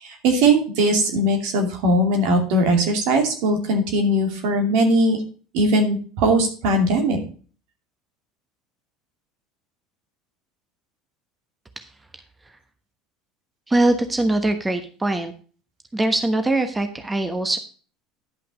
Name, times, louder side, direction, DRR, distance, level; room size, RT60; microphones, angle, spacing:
voice 1, 0.0-5.2 5.5-7.2, right 1 dB, 65° right, 3 dB, 2.5 m, -20 dB
voice 2, 13.7-15.3 15.9-17.6, right 2 dB, 15° right, 7 dB, 1.2 m, -22 dB
10.5 x 5.7 x 5.2 m, 0.40 s
hypercardioid pair, 75°, 0 cm